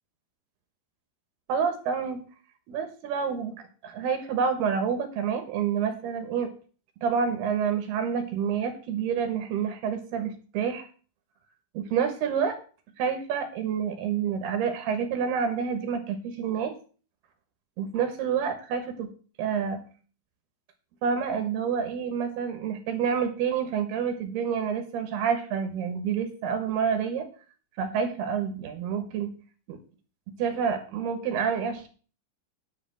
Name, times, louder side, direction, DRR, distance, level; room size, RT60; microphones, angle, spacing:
voice 1, 1.5-2.2 2.7-6.5 7.0-10.9 11.7-12.6 13.0-16.7 17.8-19.1 19.4-19.8 21.0-27.3 27.8-29.3 29.7-29.8 30.4-31.9, right 7 dB, 70° right, 7 dB, 2.7 m, -28 dB
10.5 x 5.0 x 7.5 m, 0.38 s
omnidirectional pair, 5.8 m